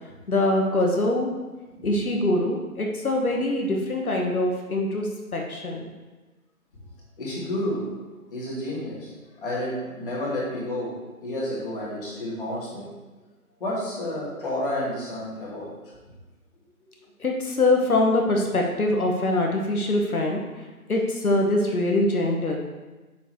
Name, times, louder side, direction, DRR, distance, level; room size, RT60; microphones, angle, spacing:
voice 1, 0.3-1.3 1.8-5.8 17.2-20.4 20.9-22.6, left 2 dB, 70° left, 0 dB, 1.4 m, -23 dB
voice 2, 7.2-7.9 8.3-9.1 9.4-12.9 13.6-15.7, left 1 dB, 35° left, -7 dB, 2.5 m, -30 dB
7.2 x 6.9 x 3.2 m, 1.2 s
figure-of-eight pair, 160°, 45 cm